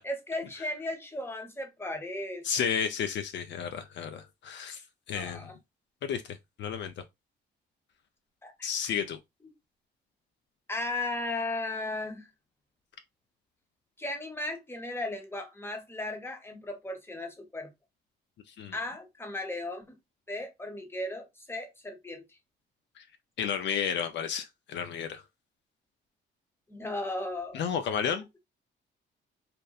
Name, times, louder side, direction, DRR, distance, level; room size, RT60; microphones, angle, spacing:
voice 1, 0.0-2.7 5.1-5.5 8.4-8.7 9.4-9.5 10.7-12.3 14.0-17.7 18.7-19.8 20.3-22.2 26.7-27.7, left 2 dB, 10° left, 0.8 m, -36 dB
voice 2, 2.4-4.8 5.1-5.5 6.0-7.0 8.6-9.2 18.6-18.7 23.0-23.1 23.4-25.2 27.5-28.3, left 7 dB, 65° left, 0.4 m, -32 dB
2.9 x 2.1 x 2.3 m
cardioid pair, 90°, 20 cm